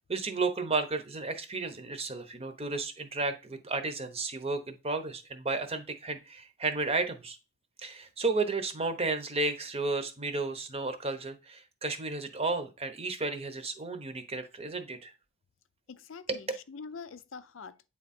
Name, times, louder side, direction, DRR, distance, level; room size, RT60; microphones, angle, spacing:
voice 1, 0.1-7.4 7.8-15.1 16.3-16.4, right 3 dB, 30° right, 0.8 m, -33 dB
voice 2, 15.9-17.9, left 5 dB, 70° left, 0.5 m, -45 dB
8.7 x 3.7 x 4.2 m
head